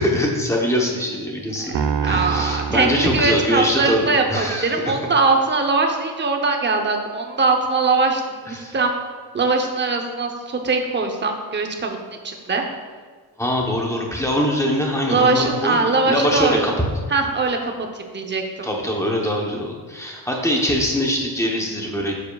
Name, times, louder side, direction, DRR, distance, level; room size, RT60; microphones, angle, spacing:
voice 1, 0.0-1.8 2.0-4.7 8.5-8.7 13.4-15.8 16.1-16.7 18.6-22.1, equal, 5° left, 0 dB, 0.8 m, -22 dB
voice 2, 1.6-8.9 9.3-12.0 12.2-12.6 15.1-16.7 17.1-18.7, right 3 dB, 25° right, 3 dB, 0.7 m, -21 dB
Piano, 1.7-4.2, right 7 dB, 70° right, 0.6 m, -27 dB
9.5 x 7.3 x 2.3 m, 1.5 s
wide cardioid pair, 170°, 40 cm